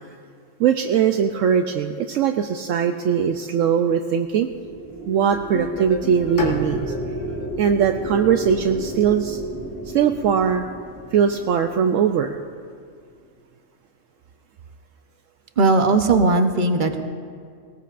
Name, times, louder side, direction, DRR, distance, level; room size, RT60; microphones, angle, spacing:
voice 1, 0.6-4.5 5.1-7.0 7.6-9.4 9.9-10.7 11.1-12.4, right 7 dB, 75° right, 5 dB, 0.9 m, -20 dB
sound 1, 4.3-12.8, right 2 dB, 25° right, 2.5 m, -33 dB
sound 2, 5.5-8.5, left 1 dB, 10° left, 0.9 m, -35 dB
Bowed string instrument, 6.4-10.3, left 2 dB, 65° left, 1.8 m, -34 dB
voice 2, 15.6-17.0, right 3 dB, 45° right, 6 dB, 0.9 m, -18 dB
19.5 x 18.5 x 2.5 m, 2.1 s
omnidirectional pair, 1.4 m